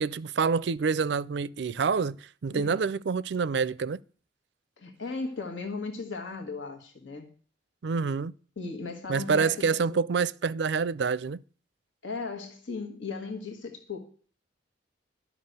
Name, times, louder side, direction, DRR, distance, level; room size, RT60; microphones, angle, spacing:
voice 1, 0.0-2.2 2.4-4.0 7.8-8.3 9.1-11.4, right 5 dB, 60° right, 0.4 m, -27 dB
voice 2, 2.5-2.8 4.8-7.4 8.6-10.0 12.0-14.1, left 4 dB, 80° left, 1.6 m, -37 dB
11.5 x 6.0 x 8.0 m
head